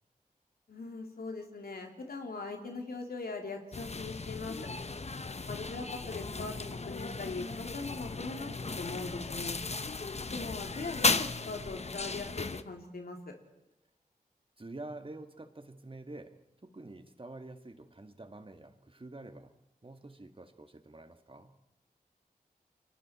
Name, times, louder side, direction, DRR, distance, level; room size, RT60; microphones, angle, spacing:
voice 1, 0.7-4.6 5.5-6.5 6.9-9.6 10.3-13.3, left 3 dB, 85° left, 3 dB, 2.8 m, -40 dB
sound 1, 3.7-12.6, left 3 dB, 45° left, 1.0 m, -36 dB
voice 2, 14.6-16.3 16.6-21.5, right 2 dB, 35° right, 7 dB, 1.9 m, -47 dB
30.0 x 22.5 x 4.3 m, 0.93 s
cardioid pair, 45°, 15 cm